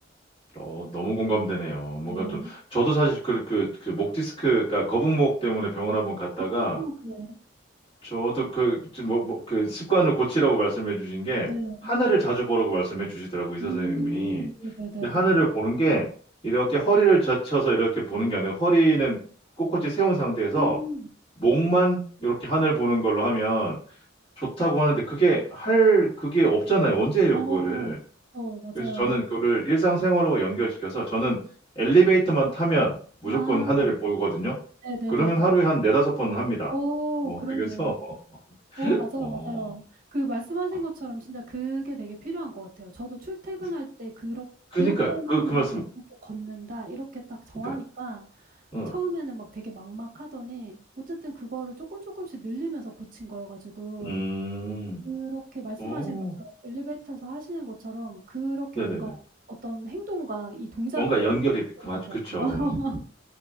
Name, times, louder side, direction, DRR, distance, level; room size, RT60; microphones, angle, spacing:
voice 1, 0.5-2.3 2.7-6.8 8.0-11.5 11.8-14.5 15.0-16.1 16.4-19.2 19.6-20.8 21.4-23.8 24.4-28.0 28.7-31.4 31.8-34.6 35.1-36.7 37.2-37.9 38.7-39.6 44.7-45.8 47.6-47.7 48.7-48.9 54.0-55.0 55.8-56.3 58.7-59.1 61.0-62.6, right 3 dB, 30° left, -9 dB, 1.9 m, -24 dB
voice 2, 2.1-2.5 6.7-7.4 11.5-11.9 13.6-15.4 20.5-21.1 27.3-27.9 28.3-29.2 33.2-33.9 34.8-35.5 36.7-37.9 38.8-39.8 40.1-44.4 44.7-45.6 46.2-48.2 48.9-50.8 51.1-54.2 55.0-59.2 59.6-61.4 62.0-63.0, right 2 dB, 45° right, 1 dB, 1.0 m, -33 dB
4.9 x 3.0 x 2.4 m, 0.43 s
head